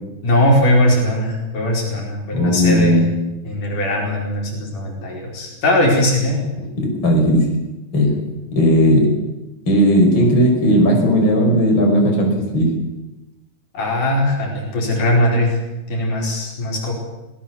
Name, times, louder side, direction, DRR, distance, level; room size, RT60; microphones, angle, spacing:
voice 1, 0.2-3.0 3.4-6.4 13.7-15.5 15.9-16.9, left 1 dB, 75° left, -1 dB, 6.3 m, -19 dB
voice 2, 2.3-3.1 6.8-7.5 7.9-8.1 8.6-9.1 9.7-12.7, equal, 35° left, 0 dB, 6.2 m, -15 dB
26.5 x 18.5 x 7.2 m, 1.0 s
omnidirectional pair, 3.8 m